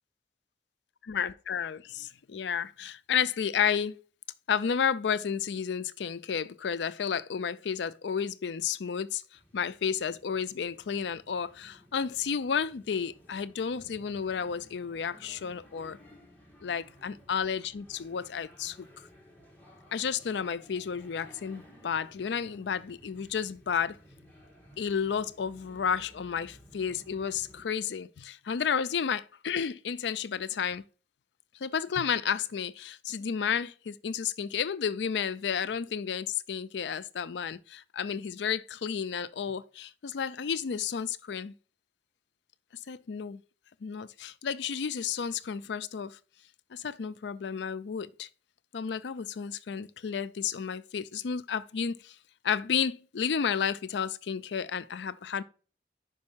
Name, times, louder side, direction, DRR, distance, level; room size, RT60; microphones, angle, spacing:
voice 1, 1.1-4.0 4.5-9.2 9.5-16.0 16.6-18.9 19.9-24.0 24.8-30.8 31.6-41.5 42.9-43.4 43.8-46.2 46.7-48.3 48.7-52.2 52.4-55.4, left 7 dB, 80° left, 0.4 m, -32 dB
sound 1, 9.3-27.7, equal, 10° left, 1.6 m, -56 dB
5.3 x 5.3 x 5.6 m
head